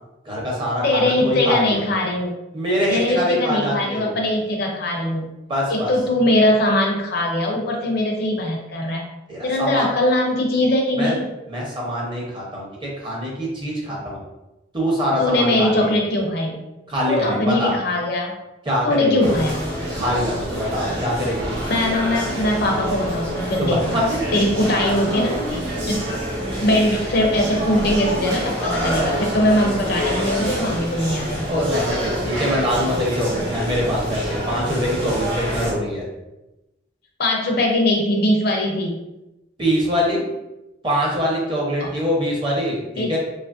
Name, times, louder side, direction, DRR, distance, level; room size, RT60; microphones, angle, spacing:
voice 1, 0.2-1.8 2.5-4.2 5.5-5.9 9.3-9.9 11.0-11.2 11.5-14.2 14.7-16.0 16.9-17.7 18.6-19.4 19.9-21.6 23.6-24.2 31.5-36.0 39.6-40.2 40.8-43.2, equal, 25° right, -4 dB, 0.8 m, -24 dB
voice 2, 0.8-2.3 2.9-5.3 5.7-9.0 9.4-11.3 15.2-16.6 17.1-18.3 18.8-19.6 21.6-24.0 24.3-25.4 25.8-26.1 26.6-31.7 37.2-39.0 41.8-41.9 43.0-43.1, left 1 dB, 55° left, 0 dB, 0.5 m, -21 dB
sound 1, 19.2-35.7, equal, 80° right, 1.0 m, -27 dB
2.9 x 2.5 x 2.4 m, 0.97 s
head